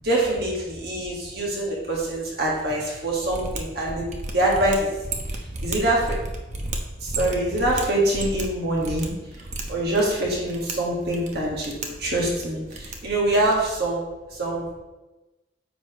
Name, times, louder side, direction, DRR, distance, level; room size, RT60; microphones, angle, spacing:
voice 1, 0.0-4.0 4.3-4.9 5.6-6.2 7.0-9.1 9.7-14.0 14.3-14.8, right 1 dB, 55° right, -4 dB, 1.7 m, -24 dB
Mechanisms, 3.2-13.7, right 2 dB, 35° right, 0.8 m, -34 dB
9.3 x 6.0 x 3.1 m, 1.1 s
head